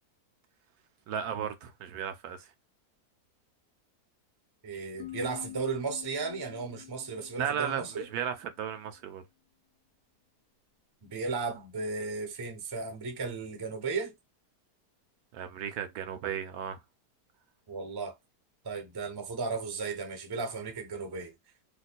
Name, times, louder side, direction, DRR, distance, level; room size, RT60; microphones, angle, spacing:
voice 1, 1.1-2.5 7.4-9.2 15.3-16.8, right 8 dB, 75° right, 1.0 m, -35 dB
voice 2, 4.6-8.1 11.0-14.1 17.7-18.2 18.6-21.3, right 4 dB, 30° right, 0.4 m, -35 dB
sound 1, 5.0-8.6, left 13 dB, 65° left, 1.2 m, -47 dB
2.8 x 2.2 x 4.0 m
omnidirectional pair, 1.7 m